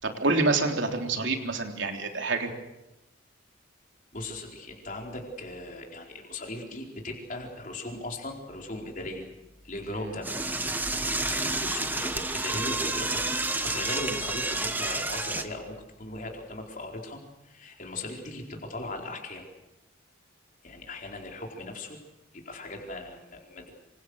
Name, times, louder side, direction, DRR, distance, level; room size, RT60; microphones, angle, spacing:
voice 1, 0.0-2.5 9.9-10.1, right 3 dB, 70° right, 3 dB, 3.5 m, -27 dB
voice 2, 4.1-9.3 9.6-10.3 11.0-17.2 17.4-19.4 20.6-22.0 22.3-23.7, left 2 dB, 40° left, 1 dB, 4.6 m, -38 dB
Door / Toilet flush, 10.2-15.4, right 2 dB, 10° right, 1.3 m, -30 dB
27.0 x 26.0 x 6.5 m, 0.94 s
head